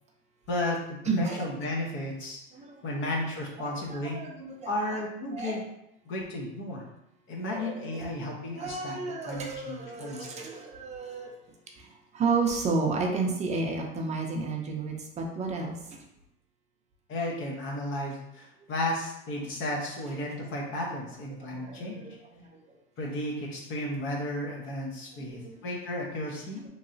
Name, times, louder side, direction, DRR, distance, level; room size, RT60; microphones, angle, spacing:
voice 1, 0.5-2.4 2.8-4.2 4.6-5.6 6.0-6.8 7.3-10.5 17.1-22.0 23.0-26.7, left 1 dB, 40° left, -2 dB, 0.8 m, -34 dB
voice 2, 1.0-1.7 2.5-3.0 3.6-5.0 5.3-5.6 7.4-8.0 8.6-11.3 11.8-16.0 21.4-22.8 25.1-25.6, right 4 dB, 25° right, 1 dB, 0.5 m, -32 dB
3.0 x 2.7 x 2.6 m, 0.83 s
supercardioid pair, 120°, 30 cm